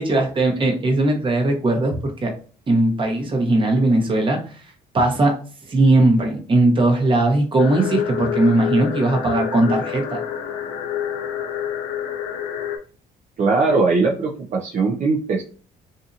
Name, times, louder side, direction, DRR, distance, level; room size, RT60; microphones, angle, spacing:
voice 1, 0.0-2.3 2.7-4.4 4.9-5.4 5.7-10.2, right 2 dB, 30° right, 2 dB, 1.0 m, -19 dB
sound 1, 7.6-12.8, left 9 dB, 80° left, 0.6 m, -27 dB
voice 2, 13.4-15.4, right 3 dB, 45° right, 0 dB, 0.6 m, -20 dB
2.6 x 2.6 x 2.4 m, 0.40 s
cardioid pair, 110°, 17 cm